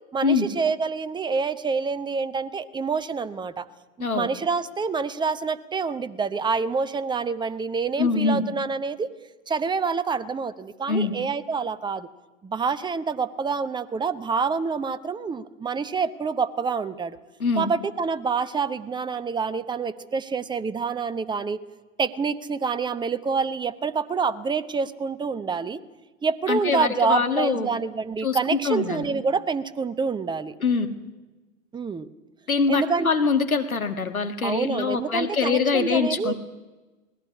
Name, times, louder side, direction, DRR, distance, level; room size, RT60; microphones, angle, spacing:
voice 1, 0.1-3.7 4.0-9.1 9.5-12.1 12.4-17.2 17.6-21.6 22.0-25.8 26.2-30.6 31.7-32.1 32.7-33.1 34.4-36.3, right 5 dB, 10° right, 15 dB, 0.8 m, -27 dB
voice 2, 8.0-8.4 10.9-11.1 17.4-17.7 26.5-27.7 28.2-29.1 30.6-30.9 32.5-36.3, left 5 dB, 85° left, 7 dB, 1.8 m, -24 dB
19.5 x 16.0 x 9.5 m, 1.2 s
figure-of-eight pair, 95°, 41 cm